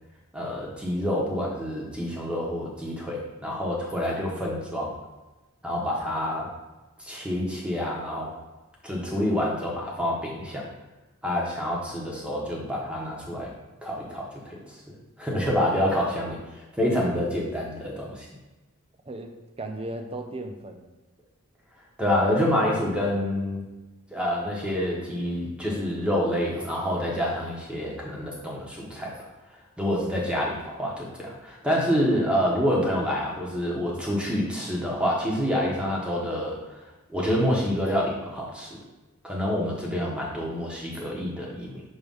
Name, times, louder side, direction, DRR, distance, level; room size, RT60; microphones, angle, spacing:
voice 1, 0.3-4.9 5.6-6.5 7.0-8.4 8.8-10.7 11.2-13.5 13.8-18.3 22.0-23.6 24.1-29.1 29.8-36.8 37.1-38.8 39.2-41.8, equal, 5° right, -3 dB, 1.2 m, -27 dB
voice 2, 19.0-21.0, right 2 dB, 25° right, 5 dB, 0.6 m, -37 dB
6.3 x 3.3 x 5.4 m, 1.1 s
head